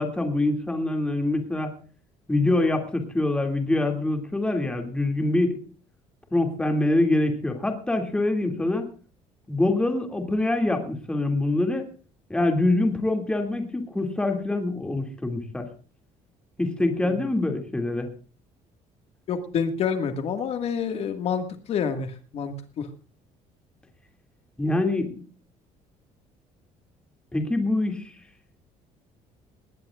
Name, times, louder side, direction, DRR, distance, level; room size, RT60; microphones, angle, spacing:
voice 1, 0.0-1.7 2.3-5.6 6.3-8.9 9.5-11.9 12.3-15.7 16.6-18.1 24.6-25.2 27.3-28.1, left 2 dB, 5° left, 4 dB, 2.3 m, -25 dB
voice 2, 19.3-22.9, left 6 dB, 50° left, 7 dB, 1.8 m, -28 dB
20.0 x 18.0 x 2.4 m, 0.39 s
cardioid pair, 155°, 13 cm